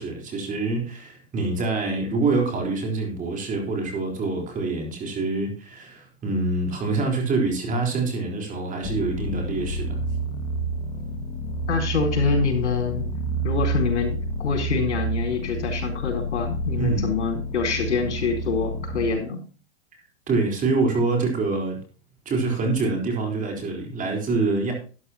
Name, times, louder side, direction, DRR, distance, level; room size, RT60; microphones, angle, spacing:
voice 1, 0.0-10.0 16.8-17.0 20.3-21.8 22.3-24.7, right 3 dB, 25° right, 2 dB, 3.9 m, -25 dB
sound 1, 8.8-19.1, right 2 dB, 35° left, 2.0 m, -29 dB
voice 2, 11.7-13.0 13.4-19.4, left 5 dB, 85° left, 3 dB, 4.5 m, -25 dB
12.5 x 11.0 x 2.9 m, 0.36 s
hypercardioid pair, 125°, 34 cm